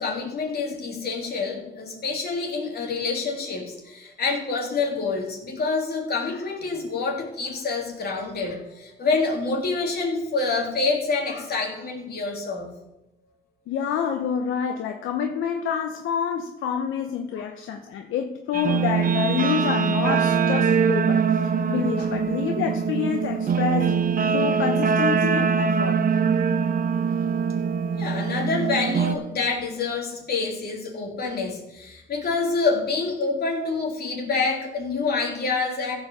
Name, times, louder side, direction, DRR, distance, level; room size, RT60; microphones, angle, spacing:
voice 1, 0.0-12.7 17.3-17.4 22.0-22.1 28.0-36.0, left 4 dB, 50° left, -1 dB, 3.2 m, -27 dB
voice 2, 13.7-21.2 21.7-26.0, left 7 dB, 80° left, 4 dB, 0.9 m, -27 dB
Guitar, 18.5-29.2, right 6 dB, 45° right, 0.8 m, -23 dB
15.0 x 5.1 x 6.9 m, 0.90 s
cardioid pair, 90°, 20 cm